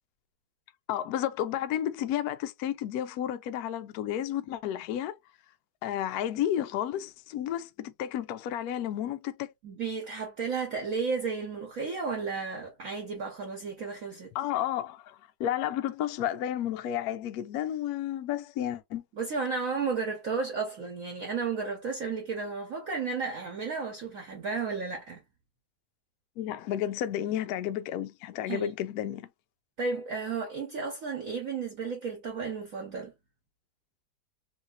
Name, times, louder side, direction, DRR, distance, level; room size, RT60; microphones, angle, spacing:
voice 1, 0.9-5.2 5.8-9.5 14.3-19.0 26.4-29.3, left 11 dB, 85° left, 0.8 m, -32 dB
voice 2, 9.6-14.3 19.1-25.2 28.5-28.7 29.8-33.1, right 4 dB, 55° right, 1.0 m, -33 dB
3.1 x 3.0 x 2.4 m
omnidirectional pair, 2.2 m